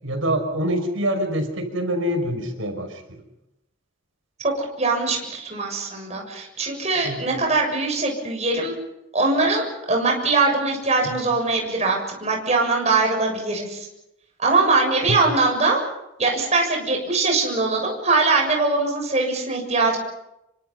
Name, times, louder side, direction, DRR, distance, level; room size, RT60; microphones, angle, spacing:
voice 1, 0.0-3.2 7.0-7.2 11.0-11.2 15.1-15.2, equal, 85° right, 6 dB, 5.6 m, -25 dB
voice 2, 4.4-8.7 9.1-13.9 14.4-15.8 16.2-20.0, right 3 dB, 35° right, 1 dB, 7.1 m, -22 dB
27.5 x 25.0 x 5.7 m, 0.86 s
head